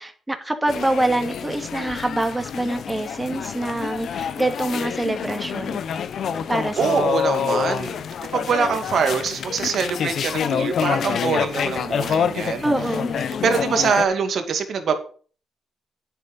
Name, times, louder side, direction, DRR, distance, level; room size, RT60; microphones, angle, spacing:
voice 1, 0.0-5.8 6.5-7.1 12.6-13.2, right 1 dB, 15° right, 6 dB, 2.4 m, -25 dB
sound 1, 0.7-14.0, left 7 dB, 70° left, 1.0 m, -27 dB
voice 2, 6.8-8.0 8.3-12.7 13.4-15.0, right 5 dB, 65° right, 7 dB, 2.4 m, -23 dB
9.9 x 8.4 x 5.5 m, 0.40 s
cardioid pair, 65°, 0 cm